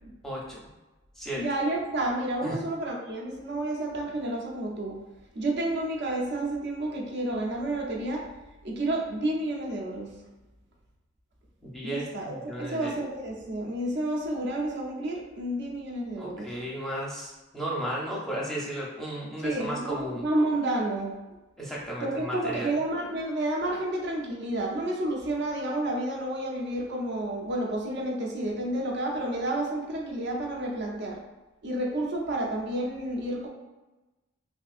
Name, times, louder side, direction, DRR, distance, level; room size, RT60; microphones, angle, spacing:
voice 1, 0.2-0.6 1.2-1.4 2.4-2.6 11.6-12.9 16.2-20.2 21.6-22.7, right 1 dB, ahead, -5 dB, 0.6 m, -34 dB
voice 2, 1.3-5.0 5.3-8.3 8.6-10.1 11.8-16.5 19.4-21.1 22.0-31.2 31.6-33.5, right 1 dB, 55° right, -1 dB, 0.6 m, -30 dB
3.4 x 2.5 x 2.4 m, 1.1 s
head